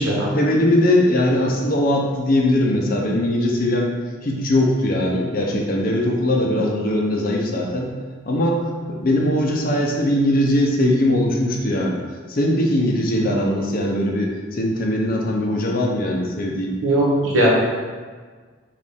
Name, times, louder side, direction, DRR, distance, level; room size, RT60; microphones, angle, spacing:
voice 1, 0.3-3.9 4.2-7.9 8.3-12.0 12.3-16.8, left 1 dB, 45° left, 0 dB, 0.6 m, -20 dB
voice 2, 16.8-17.5, right 1 dB, 85° right, -6 dB, 1.3 m, -19 dB
5.1 x 2.5 x 3.4 m, 1.5 s
head